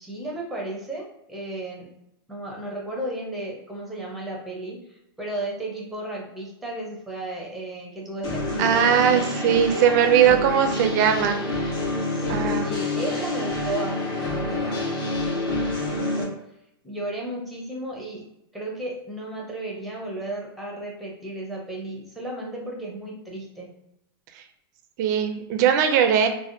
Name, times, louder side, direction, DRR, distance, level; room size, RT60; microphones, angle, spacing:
voice 1, 0.0-1.9 2.3-10.8 12.1-14.0 14.2-16.3 16.8-18.2 18.5-23.7, right 1 dB, ahead, -2 dB, 0.6 m, -34 dB
sound 1, 8.2-16.2, left 2 dB, 65° left, 1.5 m, -27 dB
voice 2, 8.6-11.4 12.3-12.7 25.0-26.3, right 8 dB, 45° right, 6 dB, 0.4 m, -20 dB
3.4 x 2.2 x 2.5 m, 0.79 s
supercardioid pair, 150°, 13 cm